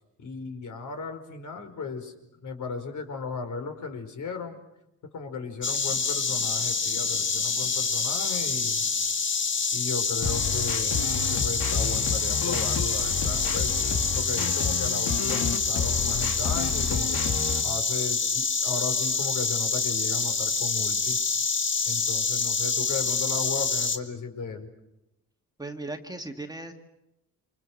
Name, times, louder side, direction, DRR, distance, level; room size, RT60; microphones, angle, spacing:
voice 1, 0.2-2.1 2.4-4.6 5.1-8.9 9.7-13.8 14.1-17.2 17.6-21.2 21.9-24.7, left 4 dB, 60° left, 6 dB, 5.0 m, -35 dB
Insect, 5.6-24.0, left 5 dB, 35° left, 1.8 m, -27 dB
sound 1, 10.2-17.6, left 5 dB, 75° left, 3.4 m, -30 dB
voice 2, 25.6-26.7, right 2 dB, 10° right, 4 dB, 2.1 m, -37 dB
29.5 x 26.5 x 6.6 m, 0.88 s
cardioid pair, 125°, 34 cm